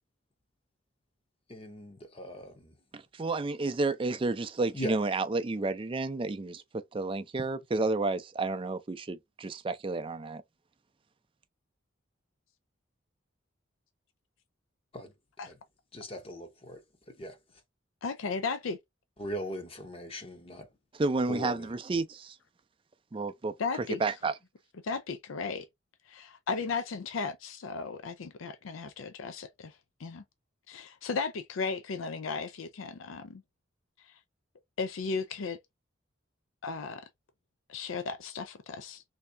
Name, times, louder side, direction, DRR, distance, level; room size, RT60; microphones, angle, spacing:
voice 1, 1.5-2.7 4.7-4.9 14.9-15.1 15.4-15.5 15.9-16.8 17.2-17.4 19.2-20.7 21.3-21.7, equal, 30° left, 0.7 m, -39 dB
voice 2, 2.9-10.4 20.9-22.4 23.1-24.3, right 3 dB, 25° right, 0.4 m, -31 dB
voice 3, 18.0-18.8 23.6-24.0 24.8-25.7 26.1-30.2 30.7-33.4 34.0-34.1 34.8-35.6 36.6-37.0 37.7-39.0, left 4 dB, 80° left, 0.4 m, -35 dB
3.5 x 2.7 x 3.3 m
head